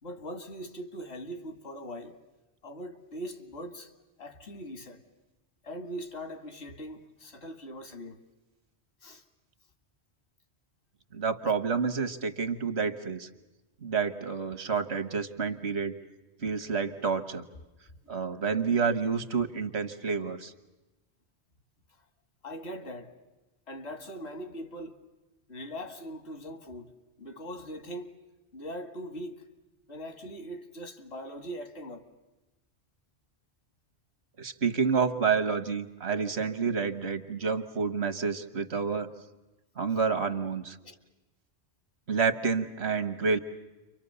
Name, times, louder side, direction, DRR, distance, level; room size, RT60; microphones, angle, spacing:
voice 1, 0.0-2.2 2.6-3.9 4.2-5.0 5.6-8.2 9.0-9.2 22.4-23.1 23.7-25.0 25.5-26.9 27.2-28.1 28.5-29.4 29.9-32.1 40.8-41.0, equal, 75° left, 2.2 m, -41 dB
voice 2, 11.1-13.3 13.8-15.9 16.4-17.5 18.1-20.5 34.4-39.1 39.8-40.8 42.1-43.4, right 5 dB, 80° right, 1.6 m, -29 dB
30.0 x 24.5 x 6.8 m
omnidirectional pair, 1.1 m